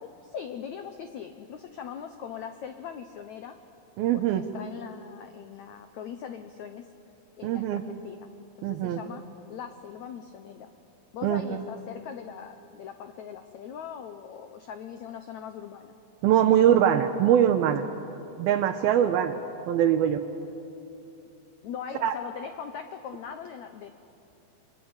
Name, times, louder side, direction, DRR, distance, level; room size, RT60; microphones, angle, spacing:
voice 1, 0.0-3.6 4.1-6.9 7.4-8.2 8.6-9.2 9.5-10.7 11.1-15.9 21.6-23.9, left 8 dB, 80° left, 8 dB, 1.6 m, -40 dB
voice 2, 4.0-4.4 7.4-7.8 8.6-9.0 11.2-11.6 16.2-17.8 18.4-19.4 19.7-20.2 22.0-22.1, right 10 dB, 75° right, 7 dB, 2.6 m, -22 dB
29.5 x 23.0 x 8.9 m, 2.9 s
omnidirectional pair, 4.6 m